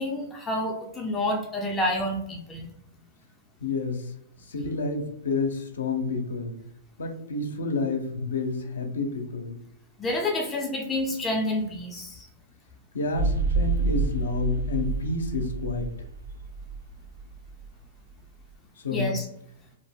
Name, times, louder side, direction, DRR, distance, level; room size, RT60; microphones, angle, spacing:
voice 1, 0.0-2.7 10.0-12.3 18.9-19.2, left 1 dB, 15° left, 0 dB, 0.5 m, -28 dB
voice 2, 3.6-4.1 4.4-6.6 7.0-9.6 12.9-15.9 18.8-19.2, left 3 dB, 80° left, 4 dB, 0.5 m, -29 dB
sound 1, 13.1-17.7, right 3 dB, 80° right, 0.5 m, -28 dB
2.4 x 2.0 x 3.5 m, 0.75 s
hypercardioid pair, 120°, 0 cm